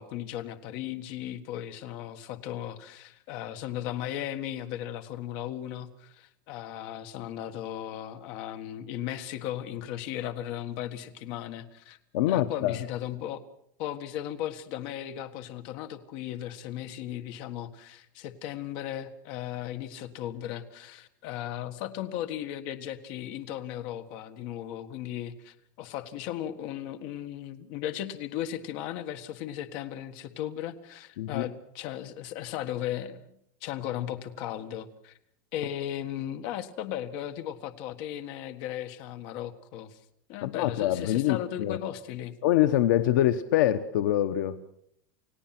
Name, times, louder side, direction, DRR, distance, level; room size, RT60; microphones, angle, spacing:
voice 1, 0.0-12.0 12.3-13.4 13.8-33.3 33.6-35.1 35.5-40.0 40.3-42.3, left 11 dB, 45° left, 8 dB, 1.7 m, -36 dB
voice 2, 12.1-12.8 31.2-31.4 40.4-41.8 42.4-44.6, left 13 dB, 70° left, 10 dB, 1.0 m, -25 dB
29.5 x 17.0 x 6.0 m, 0.73 s
supercardioid pair, 175°, 10 cm